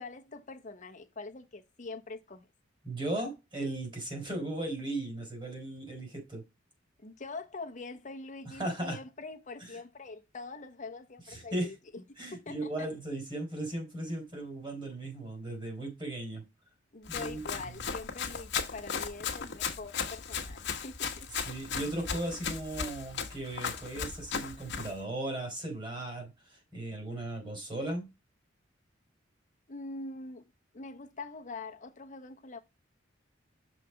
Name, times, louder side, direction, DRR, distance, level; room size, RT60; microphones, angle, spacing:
voice 1, 0.0-2.5 7.0-12.0 12.3-12.9 16.9-21.3 29.7-30.5 30.7-32.6, left 3 dB, 40° left, 1.0 m, -44 dB
voice 2, 2.8-6.4 8.5-9.0 9.6-9.8 11.3-11.7 12.2-16.4 17.1-17.4 21.3-28.1, right 1 dB, 25° right, 3.4 m, -37 dB
Run, 17.1-25.0, left 6 dB, 65° left, 1.1 m, -36 dB
6.3 x 4.2 x 4.6 m
head